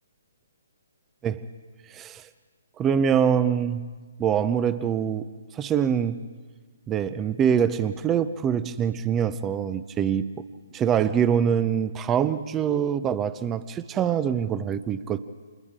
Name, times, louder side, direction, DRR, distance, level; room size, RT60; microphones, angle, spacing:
voice 1, 1.9-2.2 2.8-3.9 4.2-5.2 5.5-6.2 6.9-10.4 10.7-15.3, right 8 dB, 15° right, 15 dB, 0.6 m, -24 dB
30.0 x 27.5 x 3.7 m, 1.4 s
figure-of-eight pair, 130°, 0 cm